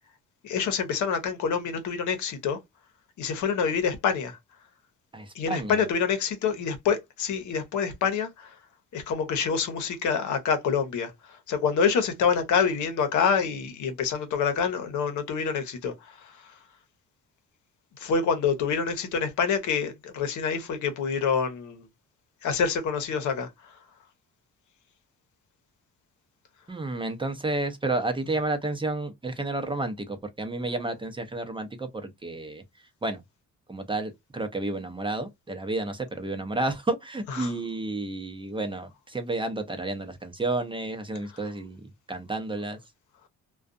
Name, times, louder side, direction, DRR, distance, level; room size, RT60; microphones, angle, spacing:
voice 1, 0.4-2.6 3.2-4.4 5.3-8.5 8.9-16.5 18.0-21.9 22.4-23.7 37.4-37.5, left 6 dB, 75° left, 0.8 m, -27 dB
voice 2, 5.1-5.8 26.7-32.6 33.0-33.2 33.7-42.8, right 2 dB, 15° right, 0.7 m, -31 dB
2.4 x 2.3 x 2.4 m
cardioid pair, 90°, 30 cm